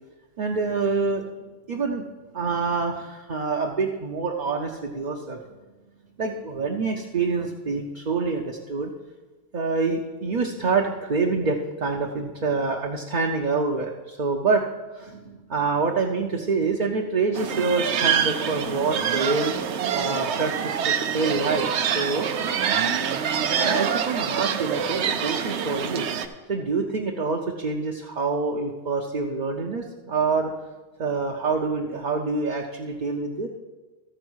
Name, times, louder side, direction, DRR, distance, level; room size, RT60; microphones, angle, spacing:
voice 1, 0.4-2.0 2.3-5.4 6.2-8.9 9.5-14.7 14.9-19.5 19.9-22.3 23.6-26.1 26.5-30.5 31.0-33.5, right 4 dB, 45° right, 0 dB, 0.8 m, -26 dB
sound 1, 17.3-26.3, right 7 dB, 85° right, 1.0 m, -25 dB
14.0 x 4.6 x 6.2 m, 1.2 s
omnidirectional pair, 1.1 m